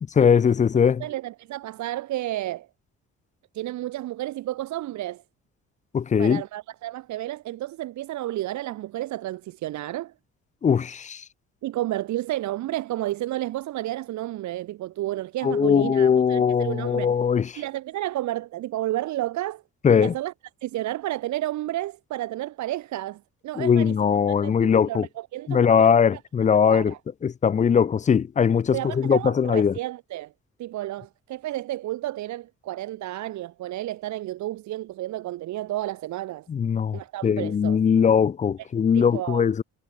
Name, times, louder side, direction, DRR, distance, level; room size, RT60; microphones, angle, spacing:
voice 1, 0.2-1.0 5.9-6.4 10.6-11.2 15.4-17.5 19.8-20.1 23.6-25.1 25.5-26.9 27.2-29.7 36.5-39.6, left 7 dB, 25° left, 0.4 m, -20 dB
voice 2, 1.0-2.7 3.5-5.2 6.2-10.1 11.6-17.1 17.5-19.6 20.0-20.3 20.6-24.0 24.3-26.2 26.7-27.0 28.7-30.3 30.6-36.5 36.9-37.8 38.6-38.7 38.9-39.4, right 15 dB, 70° right, 0.7 m, -31 dB
cardioid pair, 90°, 30 cm